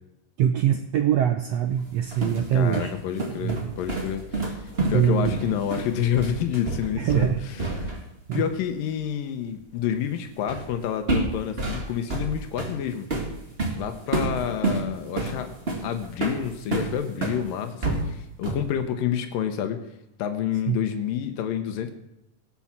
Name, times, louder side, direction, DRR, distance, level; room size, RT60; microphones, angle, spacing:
voice 1, 0.4-2.9 3.4-3.7 4.9-5.4 7.0-7.4 8.3-8.4 20.7-20.8, right 10 dB, 80° right, 7 dB, 1.4 m, -23 dB
sound 1, 1.8-8.1 8.3-8.5 10.5-10.7 11.1-17.4 17.8-18.7, right 2 dB, 25° right, 1.5 m, -29 dB
voice 2, 2.5-7.9 8.3-13.1 13.7-15.5 15.8-19.9 20.2-21.9, left 9 dB, 85° left, 6 dB, 2.7 m, -29 dB
17.5 x 7.0 x 7.4 m, 0.85 s
omnidirectional pair, 3.9 m